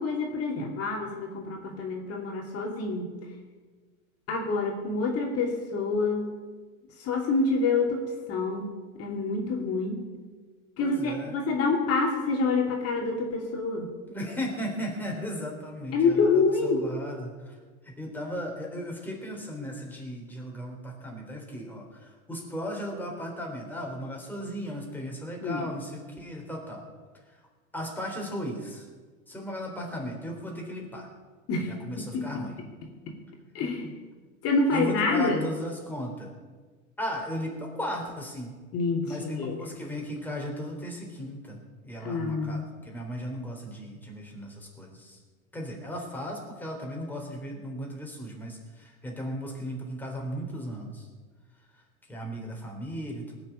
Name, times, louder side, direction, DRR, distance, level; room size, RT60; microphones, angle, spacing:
voice 1, 0.0-3.1 4.3-6.3 7.0-8.0 8.3-8.7 9.0-10.0 10.8-13.9 15.9-16.8 25.4-25.7 31.5-31.7 32.1-32.4 33.1-33.2 33.5-33.9 34.4-35.4 38.7-39.7 42.0-42.7, left 3 dB, 35° left, 1 dB, 2.7 m, -27 dB
voice 2, 10.8-11.4 14.1-17.6 17.8-26.8 27.3-27.4 27.7-28.9 29.3-31.1 31.6-32.5 34.7-36.3 37.0-38.5 39.0-45.2 45.5-51.1 51.7-51.8 52.1-53.4, equal, 5° left, 0 dB, 3.7 m, -36 dB
19.0 x 6.9 x 8.5 m, 1.4 s
hypercardioid pair, 115°, 42 cm